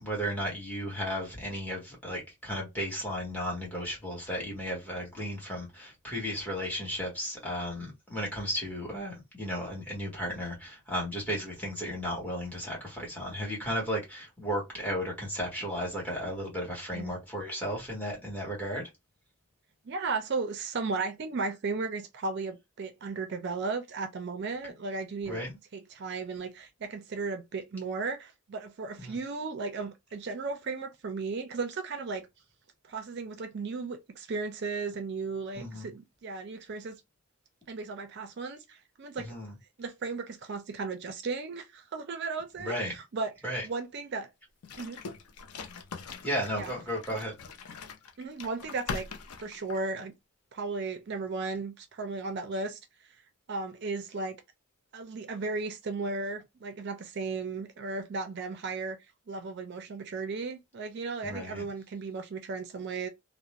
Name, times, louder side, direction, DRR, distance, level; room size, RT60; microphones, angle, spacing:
voice 1, 0.0-18.9 25.2-25.5 29.0-29.2 35.5-35.9 39.2-39.5 42.6-43.0 43.4-43.6 46.2-47.3 61.2-61.6, equal, 5° left, 1.1 m, -34 dB
voice 2, 19.8-25.4 25.7-32.3 32.9-37.0 37.7-39.4 39.8-43.3 43.6-44.3 44.8-45.0 46.5-46.7 48.2-49.1 49.4-50.1 50.5-52.8 53.5-54.4 54.9-59.0 59.3-63.1, right 4 dB, 50° right, 0.4 m, -35 dB
sound 1, 44.6-50.1, left 5 dB, 85° left, 0.5 m, -42 dB
2.4 x 2.0 x 2.8 m
head